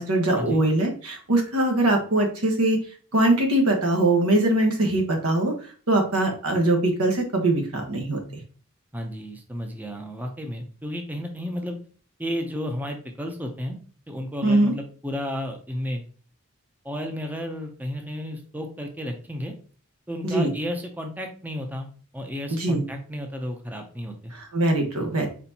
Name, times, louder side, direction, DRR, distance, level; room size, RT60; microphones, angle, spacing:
voice 1, 0.0-2.8 3.1-5.5 5.9-8.2 14.4-14.7 20.2-20.5 22.5-22.8 24.3-25.3, right 1 dB, 85° right, 3 dB, 1.3 m, -22 dB
voice 2, 8.9-11.8 12.2-13.8 14.1-16.0 16.8-19.5 20.1-21.9 22.1-24.3, equal, 10° right, 3 dB, 0.6 m, -32 dB
4.3 x 4.2 x 2.8 m, 0.41 s
head